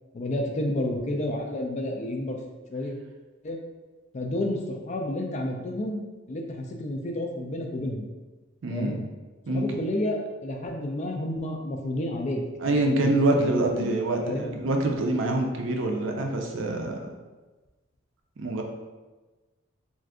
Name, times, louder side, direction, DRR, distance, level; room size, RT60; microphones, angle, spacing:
voice 1, 0.1-2.4 2.7-2.9 3.4-3.6 4.1-6.0 6.3-8.1 8.7-9.0 9.5-12.4 12.7-14.5, left 1 dB, 35° left, 2 dB, 0.3 m, -30 dB
voice 2, 8.6-9.0 9.5-9.8 12.6-17.1 18.4-18.6, right 2 dB, 65° right, 2 dB, 0.4 m, -26 dB
2.5 x 2.3 x 3.5 m, 1.2 s
head